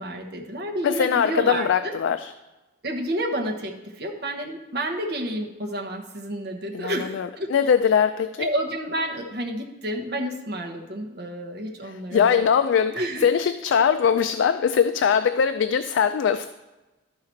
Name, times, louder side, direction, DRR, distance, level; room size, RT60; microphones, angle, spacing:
voice 1, 0.0-2.0 2.8-7.5 8.4-12.4 12.9-13.2, right 1 dB, 55° right, 1 dB, 1.0 m, -30 dB
voice 2, 0.8-2.3 6.7-8.5 12.1-16.5, left 7 dB, 70° left, 10 dB, 0.3 m, -21 dB
12.5 x 4.8 x 4.4 m, 1.1 s
head